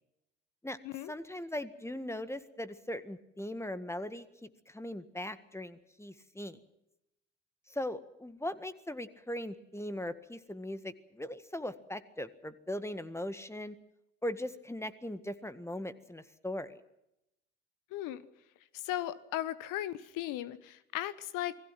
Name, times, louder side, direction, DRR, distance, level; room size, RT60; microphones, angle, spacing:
voice 1, 1.1-6.6 7.7-13.8 14.2-16.8, left 1 dB, 5° left, 12 dB, 1.8 m, -39 dB
voice 2, 17.9-18.3 18.7-21.6, left 13 dB, 60° left, 17 dB, 1.2 m, -37 dB
29.0 x 20.5 x 6.1 m, 0.86 s
figure-of-eight pair, 50°, 37 cm